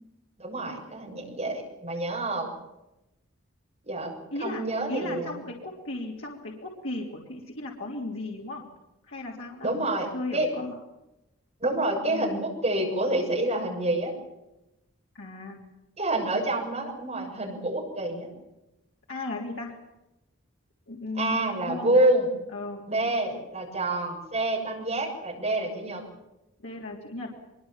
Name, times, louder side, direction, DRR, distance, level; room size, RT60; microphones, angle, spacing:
voice 1, 0.4-2.5 3.8-4.1 4.4-5.4 9.6-10.5 11.6-14.1 16.0-18.3 21.2-22.3 22.9-26.0, right 1 dB, 30° right, 0 dB, 7.0 m, -27 dB
voice 2, 4.3-8.6 9.1-9.8 10.1-10.8 12.1-12.4 15.2-15.6 19.1-19.7 20.9-21.9 22.5-22.8 26.6-27.3, left 2 dB, 70° left, -2 dB, 3.4 m, -36 dB
24.0 x 22.5 x 7.4 m, 0.94 s
head